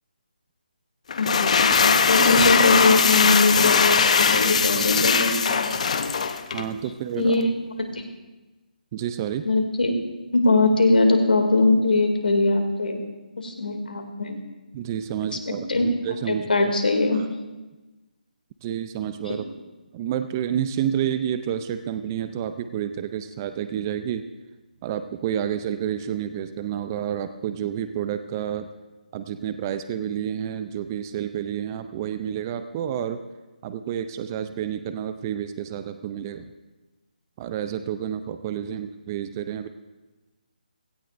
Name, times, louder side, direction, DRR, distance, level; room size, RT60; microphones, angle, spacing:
sound 1, 1.1-6.7, left 6 dB, 45° left, 0.8 m, -20 dB
voice 1, 1.2-5.3 7.1-7.5 7.8-8.0 9.4-9.9 10.3-13.0 13.4-14.4 15.7-15.8 16.3-17.2 19.2-19.4, left 2 dB, 80° left, 3 dB, 2.5 m, -21 dB
voice 2, 4.8-5.1 6.5-7.3 8.9-9.5 14.7-16.5 17.1-17.3 18.6-19.5 19.9-24.2 24.8-28.7 29.1-33.2 33.6-36.5 37.4-39.7, right 9 dB, 20° right, 9 dB, 0.4 m, -29 dB
17.0 x 16.5 x 2.6 m, 1.2 s
hypercardioid pair, 160°, 5 cm